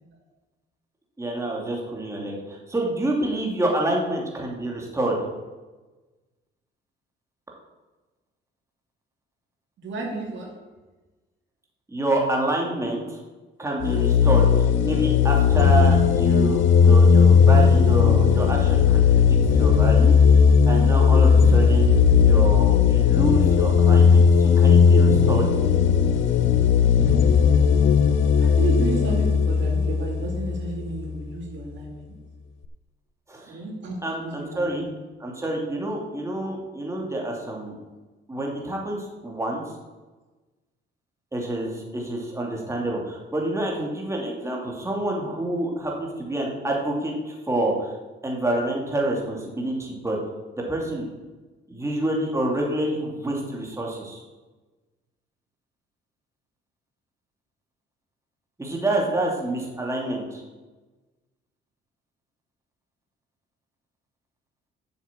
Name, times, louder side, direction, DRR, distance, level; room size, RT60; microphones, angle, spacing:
voice 1, 1.2-5.2 11.9-13.2 13.6-20.2 20.7-25.5 33.3-33.6 34.0-34.9 35.2-37.8 38.3-39.6 41.3-47.9 48.2-50.2 50.7-51.1 51.7-54.2 58.6-60.4, right 1 dB, 15° right, -1 dB, 2.7 m, -27 dB
voice 2, 9.8-10.5 26.7-27.6 28.4-32.2 33.5-34.9, right 3 dB, 70° right, 0 dB, 2.6 m, -32 dB
sound 1, 13.8-31.2, left 6 dB, 75° left, 0.8 m, -17 dB
8.2 x 7.2 x 7.4 m, 1.2 s
cardioid pair, 90°, 20 cm